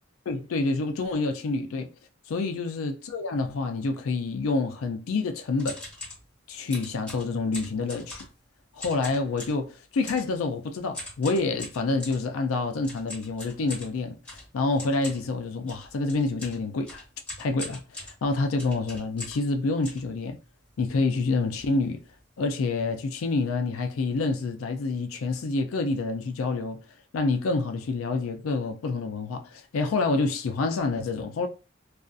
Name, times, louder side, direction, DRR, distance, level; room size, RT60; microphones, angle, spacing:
voice 1, 0.3-1.9 2.3-5.8 6.5-8.3 8.7-14.2 14.5-17.0 17.4-20.4 20.8-22.0 22.4-26.8 27.1-31.5, left 3 dB, 85° left, 0.4 m, -27 dB
sound 1, 5.6-6.2 6.7-8.4 8.8-9.6 10.0-10.3 10.9-12.2 12.8-19.5 19.8-20.7 21.2-21.3 21.4-21.7 22.0-22.2 22.8-22.9 23.1-23.4, left 2 dB, 5° left, 1.2 m, -41 dB
2.4 x 2.3 x 2.5 m
head